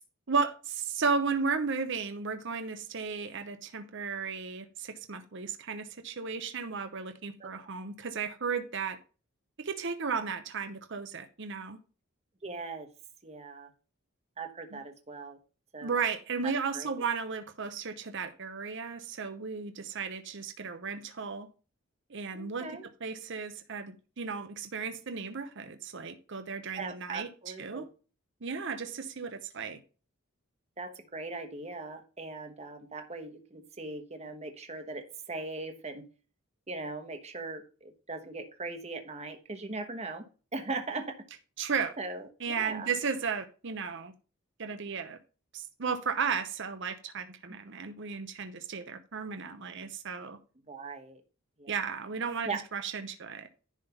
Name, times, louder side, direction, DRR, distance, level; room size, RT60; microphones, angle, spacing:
voice 1, 0.3-9.0 9.6-11.8 14.7-14.8 15.8-21.5 22.1-22.7 23.0-27.9 28.4-29.8 41.6-42.0 42.4-44.1 44.6-45.2 45.5-50.4 51.7-53.5, right 5 dB, 60° right, 0.8 m, -34 dB
voice 2, 12.4-12.9 13.2-13.7 14.4-15.4 15.7-16.0 16.4-17.0 22.3-22.8 26.8-27.9 30.8-36.1 36.7-40.3 40.5-41.2 42.0-42.9 50.7-51.2 51.6-51.7 52.4-52.6, right 3 dB, 30° right, 1.1 m, -39 dB
10.5 x 3.6 x 5.6 m
head